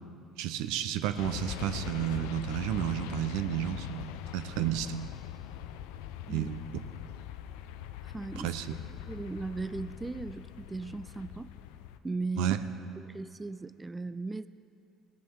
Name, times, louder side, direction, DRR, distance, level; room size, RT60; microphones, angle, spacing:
voice 1, 0.4-5.0 6.3-6.8 8.4-8.7 12.4-12.6, right 11 dB, 75° right, 10 dB, 0.5 m, -32 dB
sound 1, 1.2-12.0, left 11 dB, 75° left, 0.4 m, -42 dB
voice 2, 8.0-8.5 9.1-11.5 12.0-12.5 13.0-14.5, right 3 dB, 20° right, 14 dB, 0.3 m, -37 dB
17.0 x 7.0 x 4.7 m, 2.5 s
hypercardioid pair, 65°, 0 cm